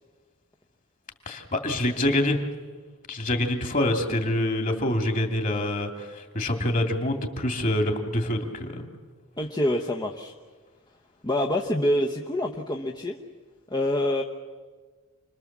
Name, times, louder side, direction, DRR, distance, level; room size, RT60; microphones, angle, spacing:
voice 1, 1.3-2.4 3.1-8.9, left 1 dB, 35° left, 5 dB, 2.6 m, -26 dB
voice 2, 9.4-10.3 11.2-13.2 13.7-14.2, left 1 dB, 20° left, 0 dB, 1.1 m, -26 dB
29.0 x 21.5 x 7.4 m, 1.4 s
head